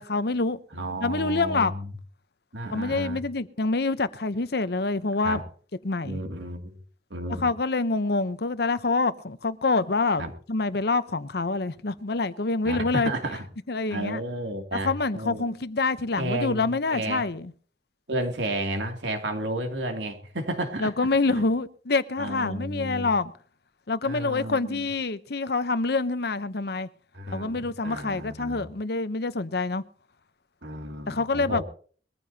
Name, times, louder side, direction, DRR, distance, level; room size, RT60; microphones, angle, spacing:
voice 1, 0.0-0.6 1.0-1.7 2.7-5.4 5.8-6.2 7.4-13.1 13.7-14.2 14.8-17.5 20.8-23.3 23.9-26.9 27.3-29.8 31.1-31.6, left 3 dB, 60° left, 0.8 m, -26 dB
voice 2, 0.7-1.9 2.5-3.2 5.2-5.4 6.0-6.7 7.1-7.4 10.2-10.3 12.6-13.4 13.9-15.5 16.2-17.2 18.1-20.9 22.2-23.1 24.0-24.9 27.1-28.7 30.6-31.6, right 1 dB, 85° right, 2.7 m, -32 dB
22.0 x 14.5 x 2.8 m
head